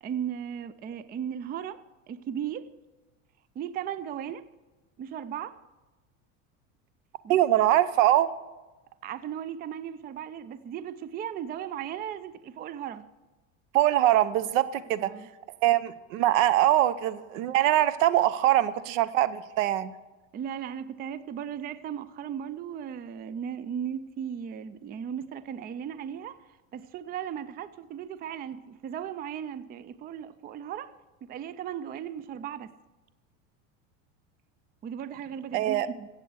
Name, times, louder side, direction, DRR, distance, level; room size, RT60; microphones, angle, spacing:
voice 1, 0.0-2.7 3.6-4.5 5.0-5.6 7.2-7.4 9.0-13.1 15.0-15.3 20.3-30.9 31.2-32.7 34.8-36.1, right 9 dB, 25° right, 0.4 m, -36 dB
voice 2, 7.3-8.3 13.7-15.1 15.6-19.9 35.5-35.9, right 13 dB, 75° right, 0.9 m, -23 dB
15.0 x 8.2 x 6.3 m
supercardioid pair, 120°, 39 cm